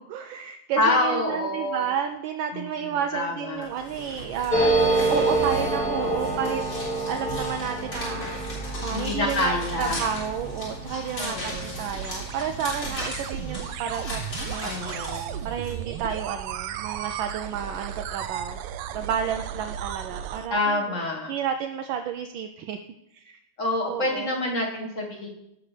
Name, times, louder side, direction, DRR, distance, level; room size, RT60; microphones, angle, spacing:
voice 1, 0.0-4.7 5.1-6.6 7.1-14.9 15.4-21.0 21.3-22.8 23.1-23.4 23.8-24.3, right 8 dB, 75° right, 5 dB, 1.2 m, -31 dB
voice 2, 0.8-1.9 2.5-3.7 6.0-6.3 8.9-10.0 11.2-11.9 14.6-15.3 20.5-21.3 23.6-25.3, left 2 dB, 40° left, -1 dB, 1.7 m, -27 dB
sound 1, 3.6-15.7, equal, 55° left, 4.1 m, -37 dB
sound 2, 4.5-13.6 13.9-14.0 14.2-14.8, right 2 dB, 5° left, 1.5 m, -28 dB
sound 3, 10.8-20.5, right 9 dB, 90° right, 1.5 m, -35 dB
16.5 x 6.0 x 3.3 m, 0.85 s
omnidirectional pair, 2.4 m